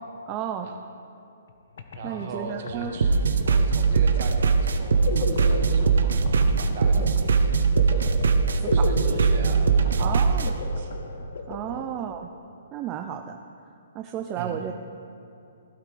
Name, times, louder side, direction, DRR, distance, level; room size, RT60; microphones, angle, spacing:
voice 1, 0.3-0.7 2.0-2.9 6.9-7.1 8.8-8.9 10.0-10.5 11.5-12.3 12.7-13.4 14.0-14.7, right 9 dB, 15° right, 5 dB, 0.3 m, -33 dB
sound 1, 1.5-1.6 1.8-12.4, left 4 dB, 50° left, 0.9 m, -35 dB
voice 2, 2.0-8.1 8.5-11.0 11.7-11.9 14.4-14.6, right 4 dB, 35° right, 4 dB, 1.3 m, -39 dB
sound 2, 3.0-10.5, right 5 dB, 80° right, 0.9 m, -21 dB
16.0 x 12.5 x 3.3 m, 2.7 s
hypercardioid pair, 180°, 0 cm